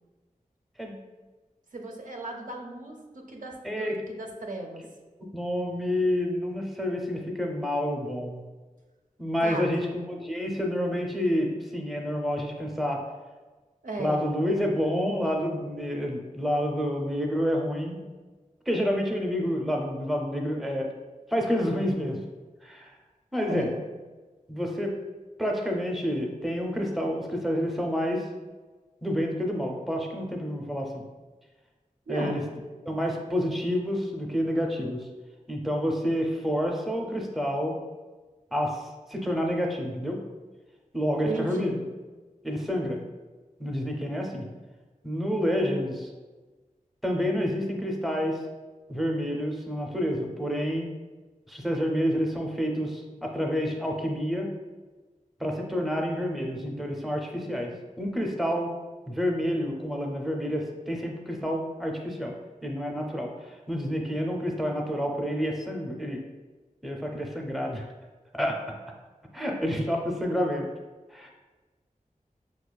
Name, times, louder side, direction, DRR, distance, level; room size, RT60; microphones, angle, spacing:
voice 1, 1.7-4.8 9.4-9.8 13.8-14.2 23.4-23.7 32.1-32.4 41.2-41.8 45.6-45.8, right 1 dB, 70° right, 1 dB, 0.5 m, -35 dB
voice 2, 3.6-4.0 5.2-8.4 9.2-13.0 14.0-18.0 18.7-20.9 21.3-22.2 22.6-22.9 23.3-23.7 24.5-25.0 25.4-28.3 29.0-31.0 32.1-32.4 32.9-35.1 35.5-37.8 38.5-38.8 39.1-40.2 40.9-41.8 42.4-43.0 43.6-44.5 45.0-45.9 47.0-48.4 48.9-50.9 51.5-54.5 55.4-58.7 59.1-62.3 62.6-66.2 66.8-67.9 68.3-68.6 69.3-70.7 71.1-71.3, equal, ahead, 1 dB, 0.5 m, -28 dB
4.9 x 2.4 x 2.2 m, 1.3 s
wide cardioid pair, 60°, 14 cm